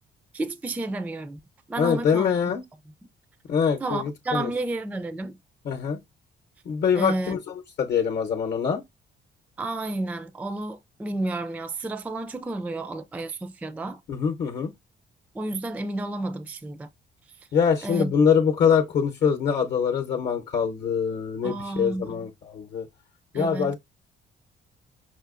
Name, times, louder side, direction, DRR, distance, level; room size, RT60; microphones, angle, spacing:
voice 1, 0.3-1.4 1.7-2.5 3.8-5.4 6.9-7.4 9.6-14.0 15.3-16.9 17.8-18.1 21.4-22.3 23.3-23.8, right 2 dB, 10° right, 0.3 m, -31 dB
voice 2, 1.8-2.6 3.5-4.5 5.6-6.0 6.7-7.4 7.8-8.8 14.1-14.7 17.5-22.9 23.3-23.8, left 7 dB, 60° left, 0.8 m, -24 dB
5.6 x 2.7 x 2.4 m
cardioid pair, 90°, 20 cm